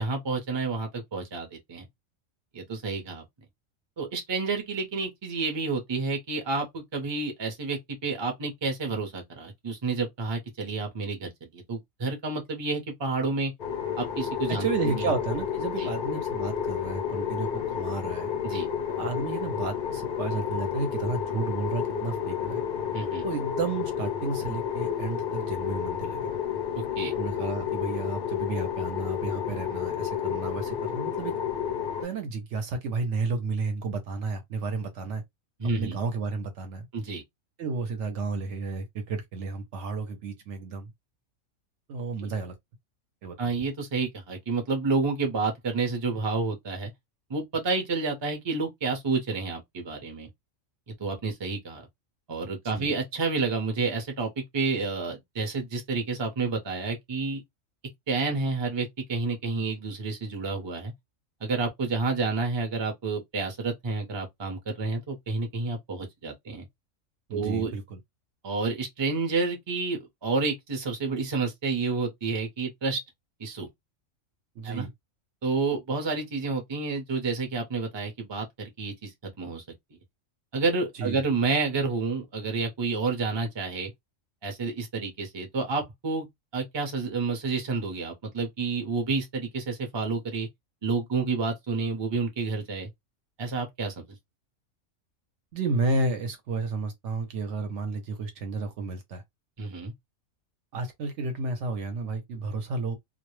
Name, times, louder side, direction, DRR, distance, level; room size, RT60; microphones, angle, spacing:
voice 1, 0.0-1.9 2.5-3.2 4.0-13.5 14.0-15.1 15.8-15.9 18.4-18.7 22.9-23.2 26.8-27.1 35.6-36.0 36.9-37.2 42.2-42.3 43.4-46.9 47.3-50.3 51.0-51.9 52.3-57.4 58.1-60.9 61.4-66.7 67.3-67.7 68.4-73.0 73.4-73.7 74.6-74.9 75.4-79.6 80.5-83.9 84.4-86.3 86.5-90.5 90.8-92.9 93.4-94.0 99.6-99.9, right 4 dB, 30° right, 0.5 m, -30 dB
sound 1, 13.6-32.0, left 8 dB, 60° left, 0.5 m, -31 dB
voice 2, 14.5-18.3 19.0-22.6 23.2-26.3 27.1-31.3 32.0-35.2 35.8-36.9 37.6-40.9 41.9-42.5 43.2-43.5 52.7-52.9 67.3-68.0 74.6-74.9 81.0-81.2 95.5-99.2 100.7-103.0, right 3 dB, 65° right, 0.8 m, -32 dB
2.2 x 2.0 x 3.0 m
omnidirectional pair, 1.4 m